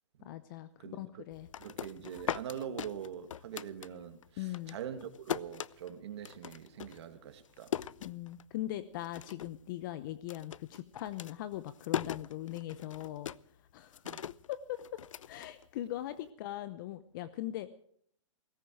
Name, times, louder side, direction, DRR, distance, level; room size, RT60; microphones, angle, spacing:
voice 1, 0.2-1.5 4.4-4.8 8.0-13.3 13.7-14.0 14.5-15.0 15.3-17.7, left 14 dB, 40° left, 0.8 m, -40 dB
sound 1, 1.3-4.3 4.5-8.7 9.0-9.6 9.9-16.1, left 9 dB, 85° left, 0.6 m, -40 dB
voice 2, 1.5-7.7 14.0-14.2, right 9 dB, 60° right, 2.3 m, -43 dB
18.0 x 15.5 x 4.6 m
hypercardioid pair, 150°, 16 cm